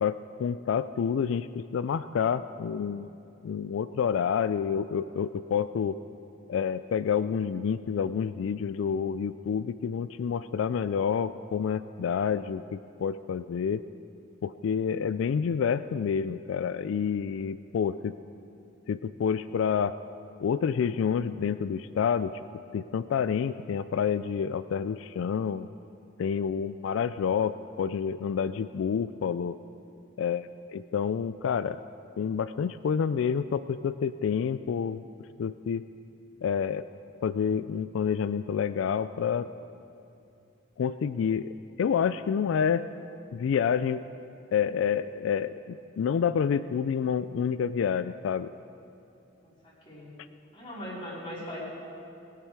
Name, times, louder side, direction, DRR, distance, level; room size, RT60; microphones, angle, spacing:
voice 1, 0.0-3.1 3.4-6.0 6.5-13.8 14.4-18.1 18.9-19.9 20.4-22.4 22.7-25.7 26.2-29.6 30.2-31.8 32.2-35.0 35.4-35.9 36.4-36.8 37.2-39.5 40.8-42.9 43.3-44.0 44.5-48.5, left 7 dB, 75° left, 14 dB, 0.3 m, -28 dB
voice 2, 50.5-51.6, equal, 25° left, -9 dB, 3.8 m, -39 dB
21.5 x 8.3 x 4.7 m, 2.7 s
head